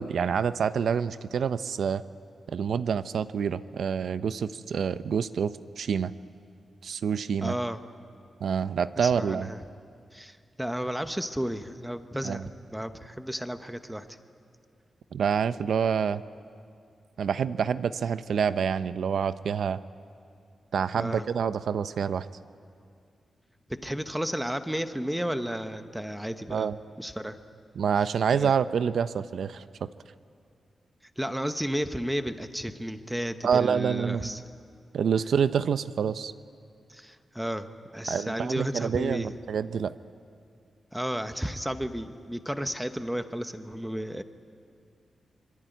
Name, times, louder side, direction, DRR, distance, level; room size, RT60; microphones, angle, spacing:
voice 1, 0.0-2.0 2.5-6.1 6.8-7.5 8.4-9.5 12.2-12.4 15.1-16.2 17.2-19.8 20.7-22.3 26.5-26.8 27.8-29.9 33.4-34.4 34.9-36.3 38.1-39.9, right 7 dB, 75° right, 13 dB, 0.7 m, -27 dB
voice 2, 7.4-7.8 8.9-9.6 10.1-14.2 21.0-21.2 23.7-26.7 27.0-27.4 28.3-28.5 31.2-34.4 36.9-37.7 37.9-39.3 40.9-44.2, equal, 5° right, 9 dB, 1.1 m, -33 dB
25.5 x 23.0 x 9.2 m, 2.3 s
wide cardioid pair, 145°, 0 cm